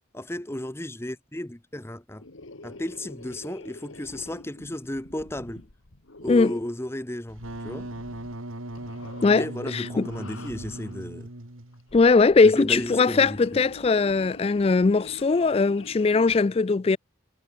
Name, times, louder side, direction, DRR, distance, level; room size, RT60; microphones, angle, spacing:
voice 1, 0.1-2.2 2.6-5.6 6.2-7.9 9.3-11.3 12.4-13.4, left 1 dB, 10° left, 0.9 m, -34 dB
sound 1, 2.2-6.8 7.3-8.4 8.7-9.5 10.0-11.0 11.7-16.4, left 2 dB, 80° left, 2.0 m, -46 dB
voice 2, 6.3-6.6 9.2-9.5 9.7-10.1 11.9-17.0, left 4 dB, 30° left, 0.3 m, -20 dB
Wind instrument woodwind instrument, 7.3-11.9, right 1 dB, 85° right, 3.3 m, -38 dB
head